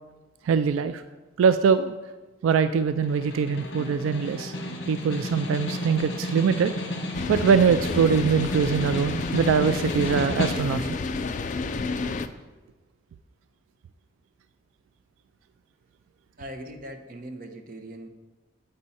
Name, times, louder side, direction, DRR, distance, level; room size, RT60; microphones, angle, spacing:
voice 1, 0.4-1.0 1.4-2.0 2.4-4.6 4.9-6.7 7.3-10.9, right 6 dB, 85° right, 11 dB, 0.3 m, -22 dB
Snare drum, 3.0-11.0, left 1 dB, 60° left, 1.1 m, -32 dB
sound 1, 7.1-12.3, left 3 dB, 40° left, 0.4 m, -30 dB
voice 2, 16.4-18.1, right 1 dB, 45° right, 5 dB, 0.8 m, -40 dB
8.5 x 5.4 x 4.1 m, 1.2 s
head